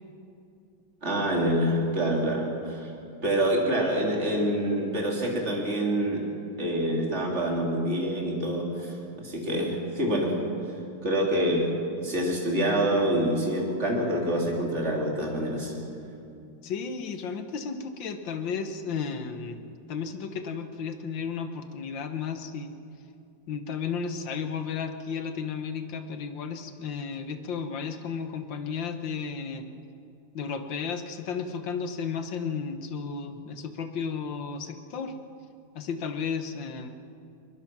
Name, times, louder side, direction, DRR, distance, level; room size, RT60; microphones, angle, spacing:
voice 1, 1.0-2.9 3.2-6.2 6.6-10.3 11.0-11.7 12.0-15.7, right 1 dB, 35° right, -1 dB, 3.3 m, -26 dB
voice 2, 16.6-19.6 19.9-22.7 23.5-29.7 30.3-35.1 35.8-36.9, left 6 dB, 70° left, 8 dB, 1.9 m, -33 dB
21.5 x 21.5 x 6.1 m, 2.6 s
omnidirectional pair, 2.2 m